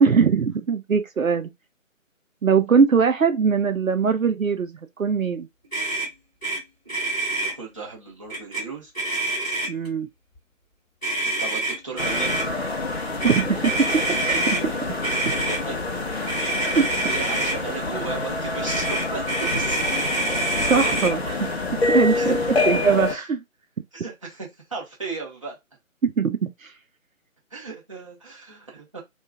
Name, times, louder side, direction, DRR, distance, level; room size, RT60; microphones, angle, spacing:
voice 1, 0.0-1.5 2.4-5.5 9.7-10.1 13.2-13.7 14.2-14.6 15.1-15.2 16.7-16.9 20.7-21.5 21.9-22.4 22.7-23.2 26.0-26.7, right 6 dB, 75° right, 0.6 m, -21 dB
Motor vehicle (road), 5.7-6.1 6.4-6.6 6.9-7.5 8.3-8.6 8.9-9.9 11.0-12.4 13.2-14.6 15.0-15.6 16.3-17.6 18.6-21.1, right 2 dB, 5° left, 1.2 m, -26 dB
voice 2, 7.2-8.9 11.2-12.5 15.3-15.8 17.0-19.8 22.1-22.6 23.0-23.3 23.9-25.6 27.5-29.0, right 4 dB, 25° right, 0.9 m, -36 dB
sound 1, 12.0-23.1, left 3 dB, 50° left, 0.7 m, -27 dB
2.9 x 2.4 x 3.3 m
figure-of-eight pair, 160°, 41 cm